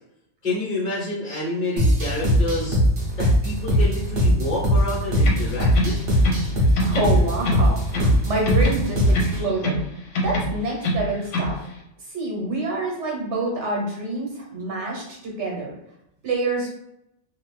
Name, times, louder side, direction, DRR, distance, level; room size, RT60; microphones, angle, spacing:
voice 1, 0.4-2.8 3.2-6.2, left 2 dB, 35° left, -7 dB, 1.2 m, -28 dB
sound 1, 1.8-9.4, equal, 50° right, 0.9 m, -20 dB
sound 2, 5.2-6.5 6.8-8.2 8.5-9.9 10.1-11.6, left 1 dB, 85° left, 1.0 m, -25 dB
voice 2, 6.8-9.8 10.2-11.6 12.1-15.7 16.2-16.7, right 2 dB, 70° right, -1 dB, 1.3 m, -27 dB
2.5 x 2.5 x 3.1 m, 0.81 s
omnidirectional pair, 1.2 m